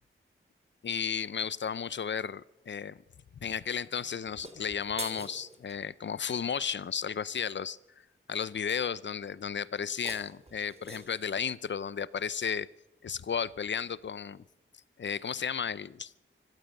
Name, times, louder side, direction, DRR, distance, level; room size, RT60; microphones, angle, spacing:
voice 1, 0.8-3.0 3.4-7.8 8.3-12.7 13.0-14.4 15.0-16.1, left 7 dB, 60° left, 20 dB, 0.7 m, -33 dB
sound 1, 4.3-5.8 9.8-11.3, right 2 dB, 30° right, 3.0 m, -44 dB
25.0 x 16.0 x 6.6 m, 0.91 s
wide cardioid pair, 140°, 21 cm